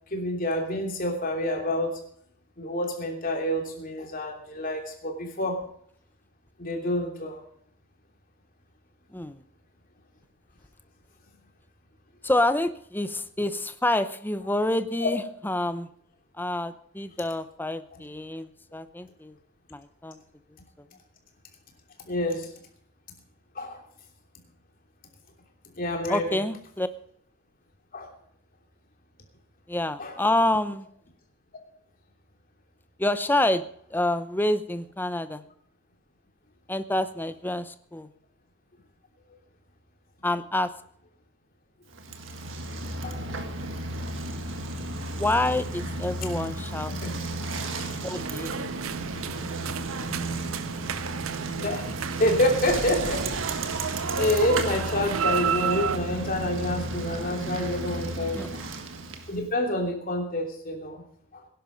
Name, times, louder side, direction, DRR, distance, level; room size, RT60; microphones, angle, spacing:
voice 1, 0.1-2.0 2.6-5.7 6.6-7.4 15.0-15.1 22.1-22.5 23.5-23.8 25.7-26.4 27.9-28.1 30.0-30.1 43.0-43.4 46.9-47.1 51.6-51.9 52.2-53.3 53.7-58.6 59.3-61.0 61.3-61.4, left 1 dB, 40° left, 2 dB, 3.0 m, -28 dB
voice 2, 9.1-9.4 12.2-15.9 16.4-19.4 19.7-20.2 26.1-26.9 29.7-30.9 33.0-33.6 33.9-35.4 36.7-38.1 40.2-40.7 45.2-46.9 48.0-48.8 58.3-58.5, left 1 dB, 10° left, 12 dB, 0.7 m, -27 dB
Bicycle, 41.9-59.5, right 2 dB, 65° right, 1.6 m, -34 dB
sound 1, 48.2-56.0, right 7 dB, 80° right, 0.7 m, -32 dB
17.5 x 10.5 x 5.2 m, 0.65 s
head